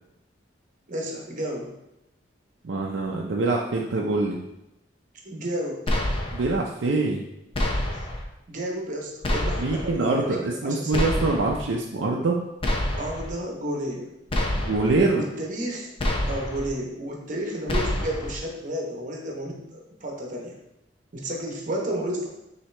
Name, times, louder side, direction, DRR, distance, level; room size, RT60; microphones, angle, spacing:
voice 1, 0.9-1.7 5.2-5.8 7.9-8.1 8.5-11.2 13.0-14.1 15.1-15.9 16.2-20.6 21.1-22.3, right 1 dB, 45° right, 0 dB, 0.9 m, -32 dB
voice 2, 2.6-4.4 6.3-7.2 9.6-12.4 14.6-15.3, right 3 dB, 90° right, -1 dB, 0.5 m, -24 dB
sound 1, 5.9-6.5 7.5-8.2 9.2-9.9 10.9-11.6 12.6-13.3 14.3-15.0 16.0-16.7 17.7-18.4, left 1 dB, 30° left, 0.6 m, -27 dB
5.8 x 2.8 x 3.2 m, 0.88 s
head